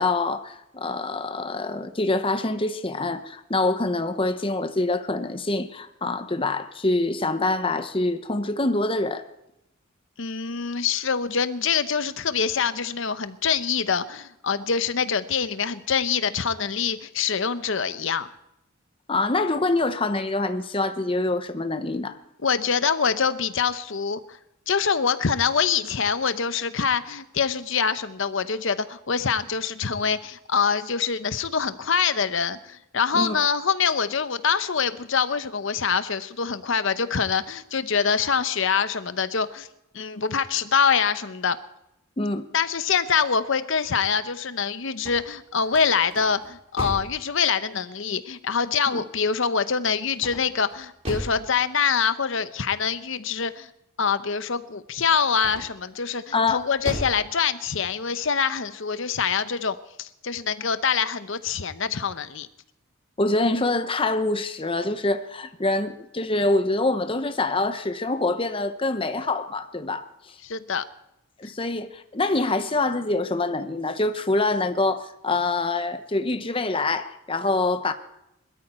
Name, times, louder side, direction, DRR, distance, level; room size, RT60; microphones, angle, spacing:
voice 1, 0.0-9.2 19.1-22.2 33.1-33.4 42.2-42.5 48.9-49.0 56.3-56.6 63.2-70.1 71.4-77.9, left 2 dB, 25° left, 0.9 m, -25 dB
voice 2, 10.2-18.3 22.4-24.2 24.7-39.7 39.9-41.6 42.5-53.7 54.0-62.5 70.4-70.8, left 6 dB, 60° left, 0.8 m, -25 dB
sound 1, 44.9-47.2 50.1-51.4 55.3-55.9 56.4-57.2, equal, 30° right, 3.9 m, -35 dB
20.5 x 13.0 x 4.3 m
head